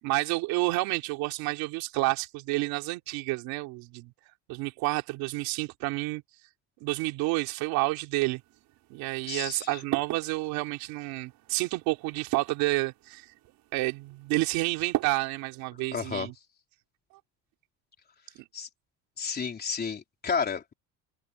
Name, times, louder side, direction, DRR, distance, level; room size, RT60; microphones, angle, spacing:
voice 1, 0.0-4.1 4.5-6.2 6.8-8.4 8.9-13.3 13.7-16.3, right 21 dB, 80° right, 3.3 m, -29 dB
sound 1, 8.3-15.7, right 16 dB, 65° right, 6.1 m, -40 dB
voice 2, 9.3-9.8 15.9-16.3 18.5-18.7 19.2-20.7, left 6 dB, 25° left, 4.0 m, -32 dB
cardioid pair, 135°, 35 cm